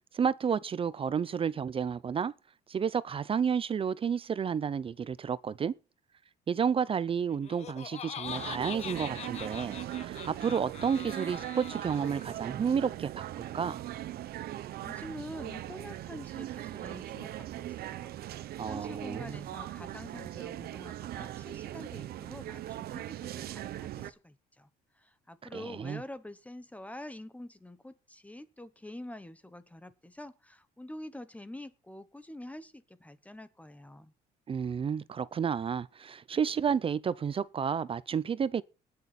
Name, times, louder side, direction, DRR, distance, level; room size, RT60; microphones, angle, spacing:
voice 1, 0.1-2.3 2.7-5.7 6.5-13.8 18.6-19.5 25.5-26.0 34.5-38.6, right 7 dB, 35° right, 0.6 m, -31 dB
Laughter, 7.3-12.5, left 9 dB, 40° left, 0.5 m, -43 dB
sound 1, 8.2-24.1, right 13 dB, 65° right, 0.9 m, -40 dB
voice 2, 14.8-18.2 18.7-24.7 24.9-34.1, left 1 dB, 10° left, 1.0 m, -46 dB
19.0 x 6.8 x 4.2 m
cardioid pair, 110°, 17 cm